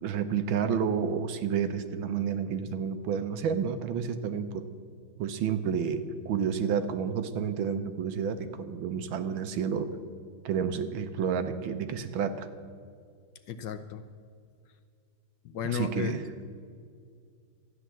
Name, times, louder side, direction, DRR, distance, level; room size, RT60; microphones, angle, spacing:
voice 1, 0.0-4.7 5.2-10.0 10.4-12.5 15.6-16.3, right 7 dB, 75° right, 10 dB, 1.5 m, -30 dB
voice 2, 13.5-14.0 15.4-16.1, left 7 dB, 70° left, 9 dB, 1.2 m, -33 dB
13.0 x 9.7 x 7.4 m, 2.2 s
omnidirectional pair, 2.3 m